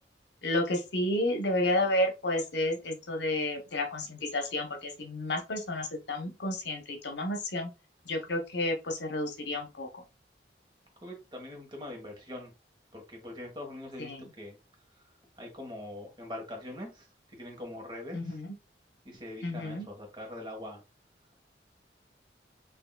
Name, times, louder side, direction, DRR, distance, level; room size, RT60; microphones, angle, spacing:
voice 1, 0.4-7.7 8.1-10.0 14.0-14.2 18.1-18.5 19.4-19.9, left 1 dB, 75° left, 4 dB, 0.9 m, -31 dB
voice 2, 11.0-12.5 12.9-14.6 15.4-18.4 19.0-20.8, left 1 dB, 25° right, 1 dB, 1.3 m, -43 dB
6.2 x 2.8 x 2.2 m, 0.28 s
head